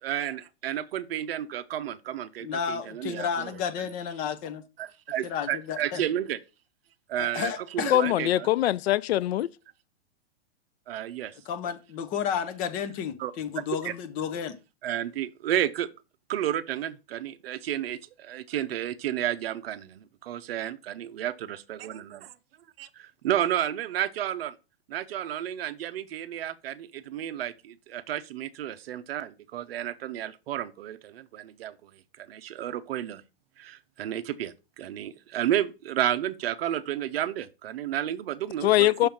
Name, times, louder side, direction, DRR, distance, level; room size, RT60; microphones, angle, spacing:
voice 1, 0.0-3.5 4.8-6.4 7.1-8.5 10.9-11.3 13.2-13.3 13.8-13.9 14.8-15.9 16.3-22.2 23.2-24.6 24.9-31.9 32.2-33.2 33.6-39.1, right 11 dB, 65° right, 0.7 m, -31 dB
voice 2, 2.4-4.6 5.2-6.0 7.2-8.0 11.5-14.6, left 7 dB, 25° left, 0.7 m, -32 dB
voice 3, 7.9-9.5 38.6-39.1, left 14 dB, 75° left, 0.5 m, -22 dB
6.4 x 3.4 x 5.8 m
hypercardioid pair, 145°, 32 cm